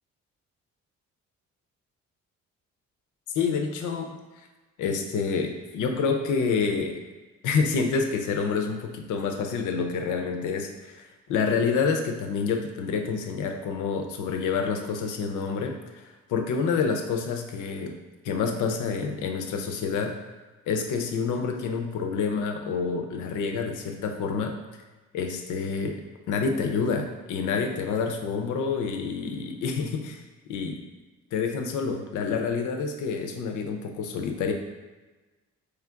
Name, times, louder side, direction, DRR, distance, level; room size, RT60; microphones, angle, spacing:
voice 1, 3.3-4.1 4.8-7.0 7.4-15.7 16.3-17.9 18.2-20.1 20.7-24.5 25.1-26.0 26.3-30.2 30.5-30.8 31.3-34.5, left 5 dB, 80° left, 4 dB, 0.6 m, -28 dB
3.2 x 2.5 x 4.4 m, 1.2 s
cardioid pair, 90°, 30 cm